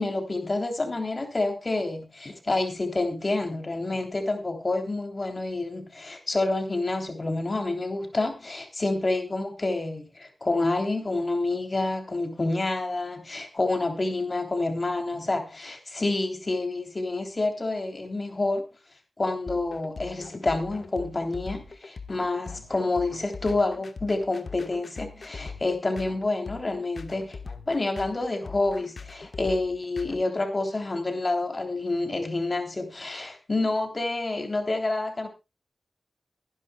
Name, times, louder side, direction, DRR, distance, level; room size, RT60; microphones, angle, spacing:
voice 1, 0.0-18.6 19.2-27.4 27.7-35.3, left 2 dB, 40° left, 5 dB, 3.4 m, -28 dB
sound 1, 19.5-30.2, left 4 dB, 70° left, 1.3 m, -41 dB
23.0 x 11.0 x 2.3 m, 0.26 s
wide cardioid pair, 65°, 0 cm